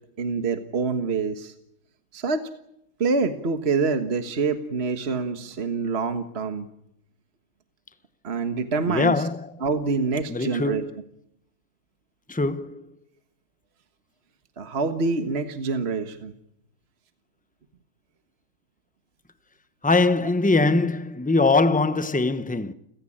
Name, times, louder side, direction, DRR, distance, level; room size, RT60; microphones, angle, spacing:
voice 1, 0.2-1.5 2.1-2.5 3.0-6.7 8.2-9.2 9.6-10.8 14.6-16.3, right 4 dB, 45° right, 1.7 m, -26 dB
voice 2, 8.9-9.6 10.3-11.0 12.3-12.9 19.8-22.7, left 3 dB, 5° left, 0.8 m, -22 dB
29.5 x 16.5 x 8.8 m
omnidirectional pair, 1.5 m